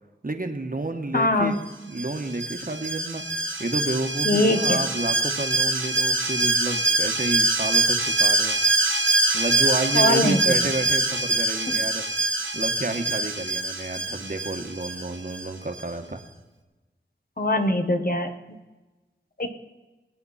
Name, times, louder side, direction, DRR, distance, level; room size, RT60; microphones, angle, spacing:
voice 1, 0.2-1.6 1.9-8.6 9.3-12.0 12.5-16.2, right 2 dB, 45° right, 6 dB, 1.5 m, -30 dB
voice 2, 1.1-1.6 4.2-4.8 9.9-10.5 17.4-18.3 19.4-19.5, left 1 dB, 45° left, 6 dB, 1.5 m, -22 dB
Alarm, 2.0-15.5 15.8-15.9, right 2 dB, 75° right, 2.0 m, -24 dB
23.5 x 8.8 x 4.3 m, 1.2 s
wide cardioid pair, 50°, 20 cm